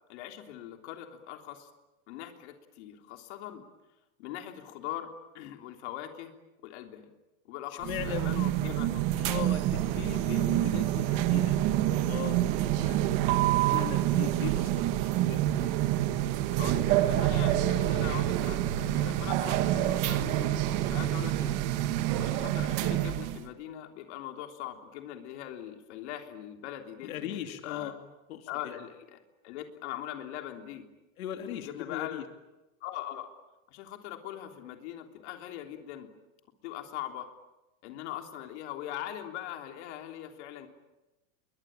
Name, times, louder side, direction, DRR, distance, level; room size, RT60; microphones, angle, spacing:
voice 1, 0.1-1.7 2.1-3.6 4.2-5.1 5.3-6.3 6.6-7.1 7.4-9.4 16.5-21.6 22.2-27.9 28.5-30.9 31.4-32.2 32.8-33.3 33.7-36.1 36.6-37.3 37.8-40.7, left 12 dB, 55° left, 5 dB, 3.4 m, -41 dB
sound 1, 7.8-23.4, right 13 dB, 35° right, 1.5 m, -27 dB
voice 2, 7.9-8.3 9.2-11.8 12.1-15.7 27.0-28.0 28.3-28.8 31.2-32.2, left 11 dB, 85° left, 6 dB, 2.7 m, -39 dB
29.0 x 23.0 x 8.9 m, 1.0 s
supercardioid pair, 170°, 41 cm